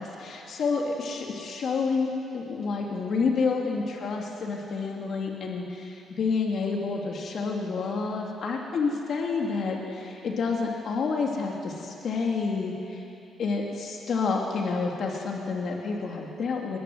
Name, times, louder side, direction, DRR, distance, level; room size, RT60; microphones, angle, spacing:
voice 1, 0.0-13.0 13.4-16.8, left 4 dB, 60° left, 0 dB, 2.8 m, -29 dB
21.5 x 20.0 x 8.0 m, 2.8 s
cardioid pair, 90°, 0 cm